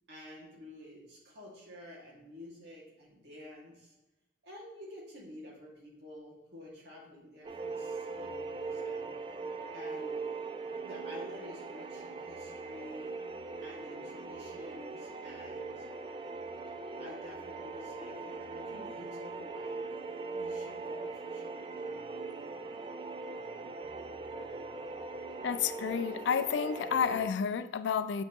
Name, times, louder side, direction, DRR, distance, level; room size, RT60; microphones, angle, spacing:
voice 1, 0.1-3.9 4.4-9.1 9.7-10.2 10.8-13.1 13.6-15.8 16.6-19.9 20.3-21.8, left 1 dB, 75° right, 2.1 m, -50 dB
sound 1, 7.4-27.3, right 4 dB, 30° right, 0.3 m, -40 dB
voice 2, 25.4-28.2, left 7 dB, 85° left, 0.3 m, -30 dB
7.6 x 4.3 x 2.9 m
head